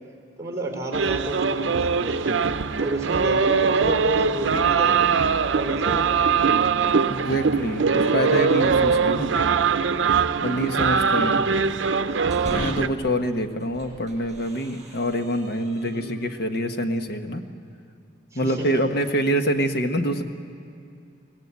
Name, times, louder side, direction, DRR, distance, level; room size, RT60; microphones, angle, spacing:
voice 1, 0.4-2.4 2.8-5.1 5.5-6.7 7.9-8.4 10.2-10.6 15.8-16.1 18.3-18.8, right 1 dB, 15° right, 2 dB, 4.1 m, -31 dB
sound 1, 0.9-12.9, right 5 dB, 80° right, 0.6 m, -22 dB
voice 2, 7.1-9.3 10.4-11.7 12.5-17.4 18.3-20.2, equal, 60° left, 6 dB, 1.3 m, -26 dB
sound 2, 12.0-13.0 13.5-16.4, right 1 dB, 35° right, 5.4 m, -40 dB
23.0 x 18.0 x 8.3 m, 2.6 s
head